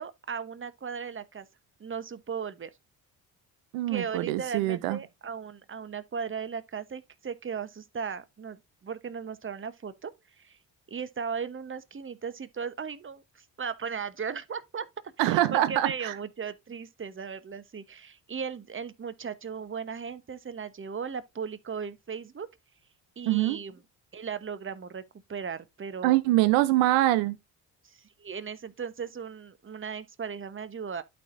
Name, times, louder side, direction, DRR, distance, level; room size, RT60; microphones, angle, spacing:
voice 1, 0.0-1.5 1.8-2.7 3.9-10.1 10.4-10.6 10.9-14.9 15.2-22.5 23.2-23.8 24.1-25.0 25.3-26.2 27.8-31.0, right 6 dB, 25° right, 1.0 m, -37 dB
voice 2, 3.7-5.0 15.2-16.2 23.3-23.6 26.0-27.4, right 16 dB, 75° right, 0.7 m, -24 dB
12.0 x 4.3 x 2.6 m
hypercardioid pair, 45°, 47 cm